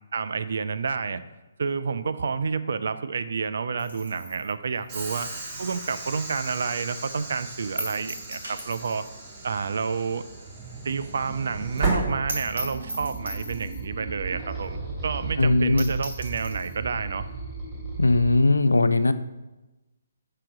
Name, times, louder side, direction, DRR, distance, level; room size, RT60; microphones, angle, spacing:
voice 1, 0.1-1.2 1.6-5.3 5.6-9.1 9.4-10.3 10.8-17.2, right 5 dB, 55° right, 11 dB, 0.4 m, -29 dB
sound 1, 3.8-6.4 6.7-6.8 7.2-7.3 7.8-9.2 9.5-9.6 9.9-10.0 10.3-10.4 10.7-10.8 11.1-11.2 11.5-11.6 11.9-12.0 12.3-13.9 14.6-14.7 15.1-15.2 15.5-15.6 15.8-16.8, right 1 dB, 70° right, 1.9 m, -38 dB
Train / Sliding door, 4.9-12.9, right 3 dB, 20° right, 1.6 m, -34 dB
sound 2, 10.5-18.4, right 4 dB, ahead, 2.4 m, -36 dB
voice 2, 15.4-15.9 18.0-19.1, left 2 dB, 70° left, 12 dB, 0.4 m, -19 dB
5.8 x 4.9 x 4.9 m, 1.1 s
figure-of-eight pair, 135°, 0 cm